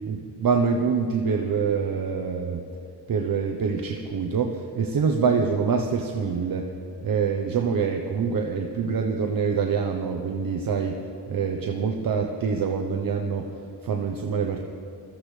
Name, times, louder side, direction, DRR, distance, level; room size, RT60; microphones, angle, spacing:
voice 1, 0.1-2.6 3.1-6.7 7.0-11.0 11.3-13.5 13.8-14.6, right 5 dB, 50° right, 2 dB, 1.0 m, -25 dB
21.5 x 14.5 x 3.3 m, 2.5 s
wide cardioid pair, 125°, 43 cm